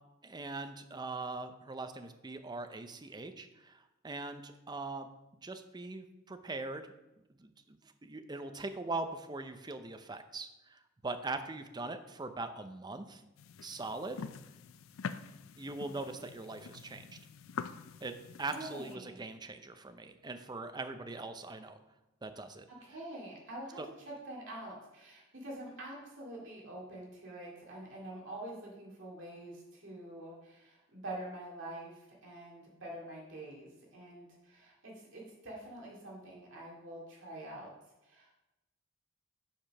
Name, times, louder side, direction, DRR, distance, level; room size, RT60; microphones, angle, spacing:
voice 1, 0.2-5.1 5.4-6.8 7.4-13.2 13.6-14.2 15.6-17.1 18.0-21.8 22.2-22.7 23.8-23.9, right 3 dB, 20° right, 8 dB, 0.6 m, -41 dB
sound 1, 13.4-19.0, left 6 dB, 80° left, 0.4 m, -45 dB
voice 2, 18.5-19.2 22.7-37.7 38.0-38.3, right 1 dB, 65° right, -4 dB, 2.3 m, -46 dB
7.4 x 4.9 x 5.8 m, 0.98 s
head